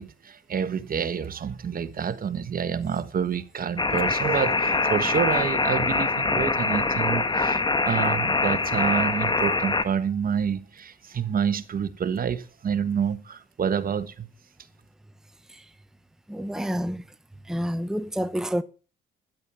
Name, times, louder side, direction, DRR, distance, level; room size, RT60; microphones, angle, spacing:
voice 1, 0.0-14.3, right 7 dB, 45° right, 1.4 m, -28 dB
sound 1, 3.8-9.8, left 3 dB, 25° left, 1.3 m, -24 dB
voice 2, 16.3-17.0 17.5-18.6, equal, ahead, 0.9 m, -28 dB
12.5 x 10.5 x 6.9 m
cardioid pair, 90°, 20 cm